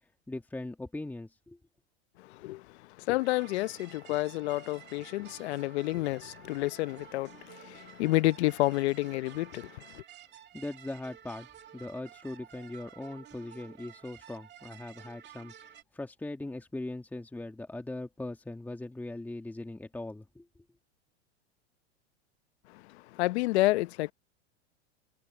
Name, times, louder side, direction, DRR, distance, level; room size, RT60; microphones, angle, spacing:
voice 1, 0.3-1.6 10.5-11.5 11.7-20.5, left 2 dB, 5° left, 1.8 m, -40 dB
voice 2, 2.2-10.0 22.7-24.1, left 19 dB, 70° left, 0.8 m, -30 dB
sound 1, 3.2-15.8, right 10 dB, 30° right, 2.0 m, -52 dB
supercardioid pair, 125°, 34 cm